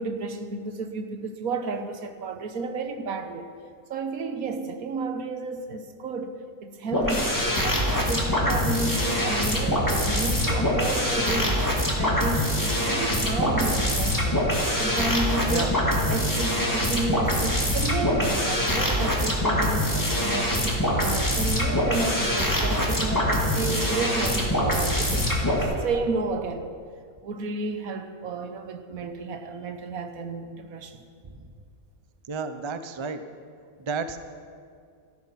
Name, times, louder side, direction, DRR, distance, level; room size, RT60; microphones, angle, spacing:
voice 1, 0.0-3.5 3.9-11.6 12.0-14.5 14.8-20.6 20.9-26.7 27.2-31.1, right 3 dB, 75° right, 7 dB, 1.4 m, -32 dB
sound 1, 6.9-25.6, equal, 15° left, 2.2 m, -24 dB
voice 2, 32.3-33.2 33.9-34.2, right 4 dB, 30° right, 9 dB, 0.5 m, -30 dB
13.5 x 13.5 x 5.8 m, 2.2 s
omnidirectional pair, 1.5 m